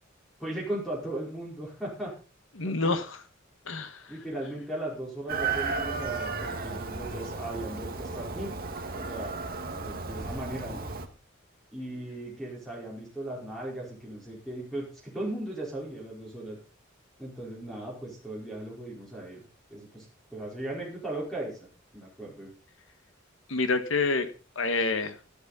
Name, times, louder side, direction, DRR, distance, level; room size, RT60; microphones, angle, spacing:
voice 1, 0.4-2.1 2.6-2.9 4.1-8.5 8.9-9.3 9.7-10.8 11.7-16.6 17.2-19.4 19.7-20.0 20.3-21.6 21.9-22.5, right 1 dB, ahead, -4 dB, 4.8 m, -37 dB
voice 2, 2.5-3.2 3.6-4.1 23.5-24.3 24.5-25.2, left 3 dB, 70° left, 9 dB, 1.6 m, -28 dB
Chicken rooster, 5.3-11.1, right 4 dB, 50° right, 1.9 m, -34 dB
13.0 x 12.5 x 4.2 m, 0.37 s
head